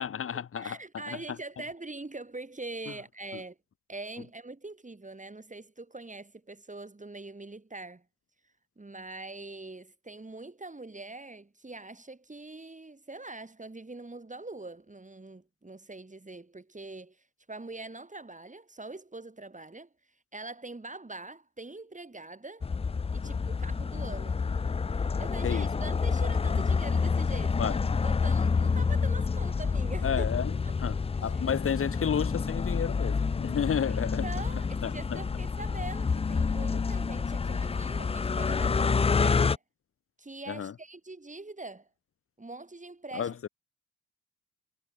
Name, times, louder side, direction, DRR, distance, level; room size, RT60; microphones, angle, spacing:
voice 1, 0.0-0.8 1.1-1.2 25.4-25.7 26.5-26.6 27.6-27.8 30.0-30.5 30.8-34.3 34.8-35.2 40.5-40.7 43.1-43.5, left 8 dB, 35° left, 0.8 m, -31 dB
voice 2, 0.5-3.6 3.9-8.0 8.8-19.9 20.3-22.7 23.1-24.4 25.2-30.3 30.6-30.7 31.2-31.4 33.9-39.6 40.2-41.9 42.4-43.5, right 2 dB, 20° right, 6.4 m, -43 dB
sound 1, 22.6-39.6, left 5 dB, 15° left, 0.4 m, -28 dB
hypercardioid pair, 50°, 37 cm